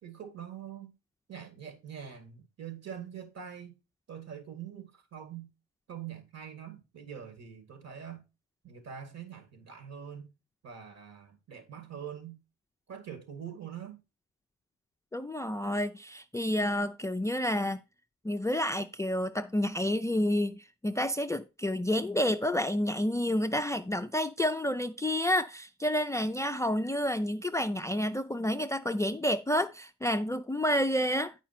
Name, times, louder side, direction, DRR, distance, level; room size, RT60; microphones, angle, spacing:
voice 1, 0.0-0.9 1.3-3.8 4.1-5.5 5.9-8.2 8.6-10.3 10.6-12.4 12.9-14.0, right 8 dB, 60° right, 2.1 m, -44 dB
voice 2, 15.1-17.8 18.2-31.3, left 1 dB, 10° left, 0.4 m, -29 dB
9.0 x 5.0 x 4.2 m
cardioid pair, 90°, 30 cm